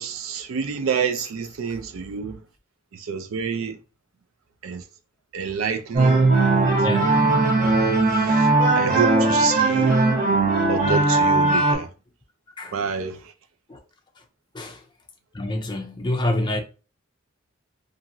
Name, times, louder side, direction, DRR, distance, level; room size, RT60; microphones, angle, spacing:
voice 1, 0.0-2.4 2.9-3.8 4.6-4.8 5.3-6.7 7.6-8.5 8.7-10.0 10.7-11.9 12.7-13.3, right 6 dB, 80° right, 0.4 m, -28 dB
sound 1, 5.9-11.7, right 3 dB, 40° right, 1.0 m, -19 dB
voice 2, 6.6-7.2 7.7-7.9 12.6-12.8 13.7-13.8 14.5-14.8 15.3-16.6, left 1 dB, 20° left, 0.4 m, -27 dB
2.9 x 2.5 x 2.6 m
head